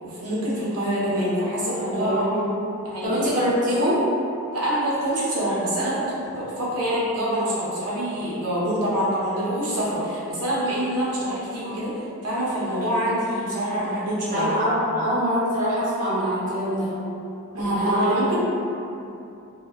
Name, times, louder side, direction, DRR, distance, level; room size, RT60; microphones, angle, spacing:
voice 1, 0.0-2.3 2.8-3.3 4.5-11.9 12.2-14.5 17.5-18.4, equal, 85° right, -8 dB, 0.8 m, -25 dB
voice 2, 1.6-2.4 3.0-4.0 11.6-11.8 14.3-16.9 17.6-18.3, equal, 35° right, -9 dB, 0.5 m, -24 dB
2.2 x 2.1 x 3.4 m, 2.7 s
head